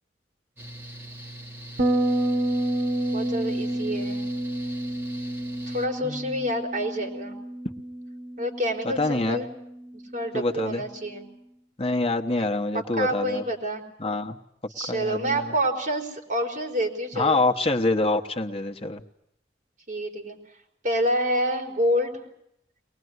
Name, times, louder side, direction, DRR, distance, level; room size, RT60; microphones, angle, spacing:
Mechanical fan, 0.6-5.9, right 1 dB, 15° right, 2.5 m, -41 dB
Bass guitar, 1.8-11.1, right 1 dB, 65° right, 1.6 m, -30 dB
voice 1, 3.1-4.2 5.7-7.4 8.4-9.5 10.1-11.3 13.0-13.8 14.7-17.4 19.9-20.4 20.8-22.1, equal, 45° right, 1 dB, 4.8 m, -27 dB
voice 2, 6.0-6.5 9.0-9.4 10.3-10.8 11.8-13.4 14.0-14.4 14.9-15.6 17.1-19.0, left 2 dB, 35° left, 4 dB, 1.2 m, -26 dB
23.5 x 20.0 x 9.5 m, 0.77 s
head